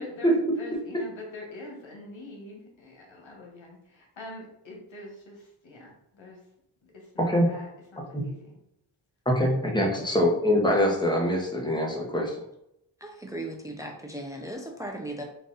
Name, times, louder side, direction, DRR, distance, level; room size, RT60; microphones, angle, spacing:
voice 1, 0.0-6.4 7.1-8.6 9.7-10.2, left 2 dB, 85° left, -1 dB, 1.3 m, -44 dB
voice 2, 7.2-7.5 8.1-8.3 9.3-12.4, equal, 10° left, -1 dB, 1.1 m, -24 dB
voice 3, 13.0-15.2, right 1 dB, 5° right, 2 dB, 0.6 m, -37 dB
4.0 x 2.6 x 3.9 m, 0.80 s
cardioid pair, 60°, 45 cm